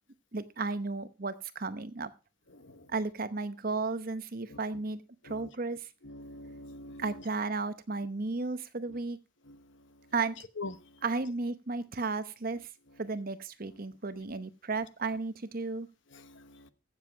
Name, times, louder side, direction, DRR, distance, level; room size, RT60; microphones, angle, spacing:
voice 1, 0.3-2.1 2.9-5.9 7.0-9.2 10.1-10.4 11.0-12.7 13.0-15.9, right 3 dB, 40° right, 0.8 m, -34 dB
voice 2, 6.0-7.0 10.6-10.7 16.2-16.7, left 2 dB, 60° left, 1.0 m, -43 dB
15.5 x 7.3 x 4.5 m
head